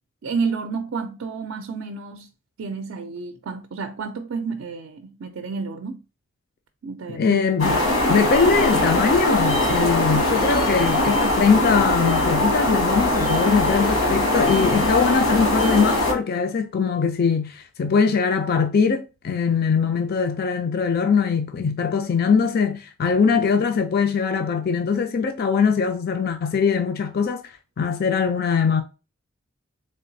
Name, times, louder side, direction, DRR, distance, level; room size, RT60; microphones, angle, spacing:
voice 1, 0.2-2.3 2.6-6.0 6.8-7.4, right 5 dB, 60° right, 0.4 m, -30 dB
voice 2, 7.1-7.8 8.1-28.8, left 5 dB, 50° left, 0.4 m, -21 dB
sound 1, 7.6-16.1, left 1 dB, 75° left, 1.2 m, -21 dB
3.7 x 3.3 x 2.7 m
head